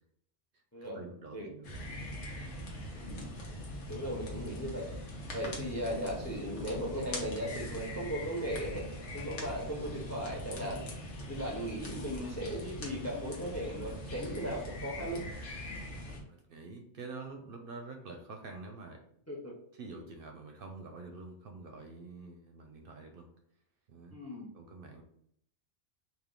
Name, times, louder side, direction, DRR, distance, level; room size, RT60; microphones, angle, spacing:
voice 1, 0.9-2.1 5.3-5.4 16.3-19.0 19.7-23.3 23.9-24.2 24.5-25.0, right 3 dB, 60° right, 4 dB, 0.7 m, -47 dB
sound 1, 1.6-16.2, left 1 dB, 90° left, 1.2 m, -42 dB
voice 2, 2.9-3.3 3.9-4.9 5.3-8.9 9.1-10.8 11.3-15.2 19.3-19.5 24.1-24.5, equal, 20° left, -1 dB, 0.4 m, -37 dB
3.4 x 2.6 x 3.7 m, 0.71 s
omnidirectional pair, 1.2 m